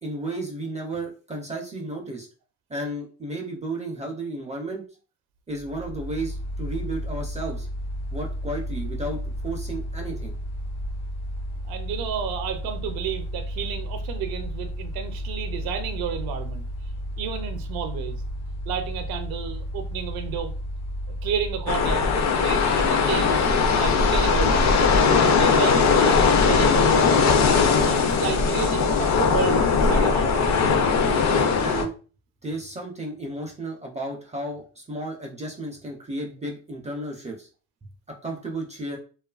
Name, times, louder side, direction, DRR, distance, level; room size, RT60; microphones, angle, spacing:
voice 1, 0.0-2.3 2.7-4.8 5.5-7.7 8.1-10.3 31.6-31.9 32.4-37.5 38.2-39.0, right 2 dB, 20° right, 1 dB, 0.4 m, -33 dB
Mechanical fan, 5.5-22.4, equal, 80° left, 0.8 m, -33 dB
voice 2, 11.7-16.7 17.2-18.2 18.7-20.5 21.2-22.1 22.4-24.8 25.2-27.4 28.0-30.7, right 8 dB, 70° right, 7 dB, 0.6 m, -32 dB
sound 1, 21.7-31.8, left 5 dB, 45° left, 0.5 m, -19 dB
2.5 x 2.3 x 2.3 m, 0.37 s
cardioid pair, 105°, 38 cm